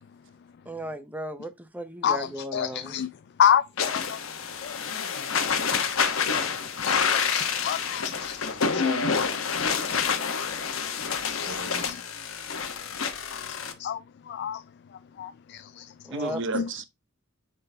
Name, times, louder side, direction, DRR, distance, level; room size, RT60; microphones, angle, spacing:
voice 1, 0.7-3.0 16.0-16.4, right 1 dB, 10° right, 0.6 m, -36 dB
voice 2, 2.0-3.1 3.4-4.2 4.6-4.8 5.4-5.5 6.8-9.0 9.6-9.8 10.1-10.2 11.3-11.4 11.8-12.0 13.3-14.6 15.2-15.9 16.5-16.7, left 9 dB, 55° left, 0.3 m, -29 dB
sound 1, 3.8-13.7, left 6 dB, 80° left, 1.1 m, -28 dB
voice 3, 11.4-11.9 16.1-16.9, right 2 dB, 65° right, 0.8 m, -33 dB
9.3 x 3.7 x 2.7 m
head